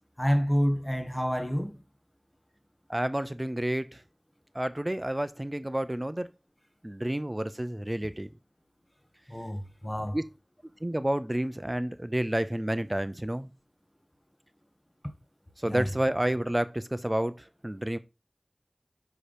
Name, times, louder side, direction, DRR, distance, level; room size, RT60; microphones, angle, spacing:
voice 1, 0.2-1.7 9.3-10.2 15.7-15.9, equal, 20° left, 1.7 m, -28 dB
voice 2, 2.9-4.0 4.5-6.3 6.8-8.3 10.1-10.2 10.8-13.5 15.6-18.0, right 1 dB, 25° right, 0.7 m, -30 dB
5.7 x 5.0 x 5.0 m
wide cardioid pair, 40°, 0 cm